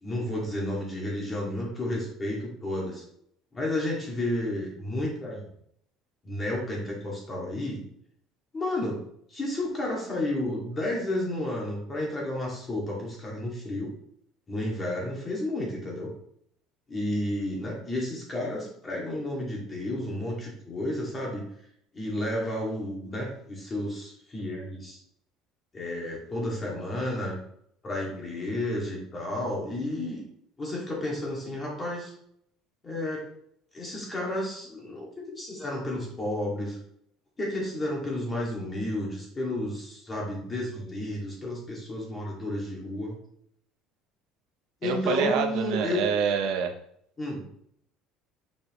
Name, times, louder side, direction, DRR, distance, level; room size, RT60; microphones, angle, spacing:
voice 1, 0.0-3.0 3.5-5.4 6.2-7.8 8.5-9.0 9.3-13.9 14.5-16.1 16.9-21.5 21.9-25.0 25.7-27.4 27.8-30.2 30.6-32.1 32.8-33.2 33.7-36.8 37.4-43.2 44.8-46.0 47.2-47.4, left 1 dB, 15° left, -3 dB, 2.1 m, -31 dB
voice 2, 44.8-46.7, right 7 dB, 60° right, 4 dB, 0.8 m, -27 dB
7.2 x 4.9 x 3.1 m, 0.69 s
cardioid pair, 170°, 0 cm